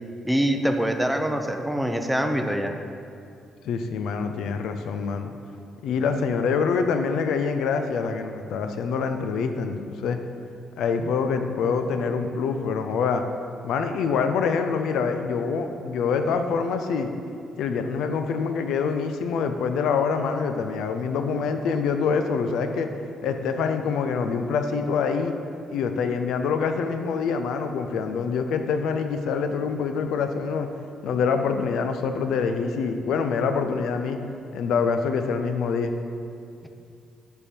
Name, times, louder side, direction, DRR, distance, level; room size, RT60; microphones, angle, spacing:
voice 1, 0.2-2.7, equal, 5° right, 5 dB, 0.5 m, -24 dB
voice 2, 3.6-5.3 5.8-10.2 10.8-13.2 13.6-17.1 17.6-22.9 23.2-25.3 25.7-30.7 31.0-34.2 34.5-35.9, left 5 dB, 80° left, 7 dB, 0.4 m, -25 dB
9.7 x 3.5 x 4.4 m, 2.5 s
cardioid pair, 90°, 0 cm